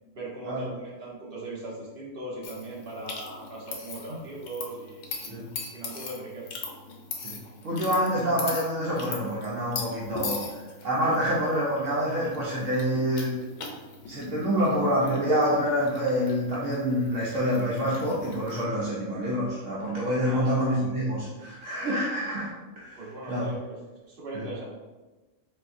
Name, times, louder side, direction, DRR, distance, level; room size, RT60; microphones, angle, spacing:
voice 1, 0.1-5.3 5.7-6.6 20.2-20.7 23.0-23.8 24.0-24.6, right 2 dB, 45° right, -5 dB, 1.3 m, -39 dB
sound 1, 2.4-18.6, left 4 dB, 70° left, 1.0 m, -40 dB
voice 2, 7.6-10.4 10.8-13.4 14.1-22.5 22.8-23.0 23.3-23.5 24.3-24.4, equal, 70° right, -6 dB, 1.1 m, -27 dB
4.3 x 3.6 x 2.6 m, 1.2 s
omnidirectional pair, 1.4 m